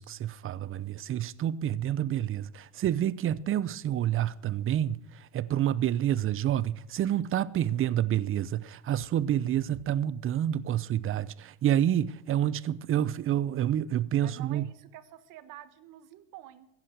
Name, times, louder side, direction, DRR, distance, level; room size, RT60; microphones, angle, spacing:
voice 1, 0.0-5.0 5.3-14.7, right 11 dB, 35° right, 0.7 m, -28 dB
voice 2, 14.2-16.7, right 12 dB, 60° right, 1.5 m, -48 dB
15.5 x 11.0 x 6.4 m
supercardioid pair, 105°, 36 cm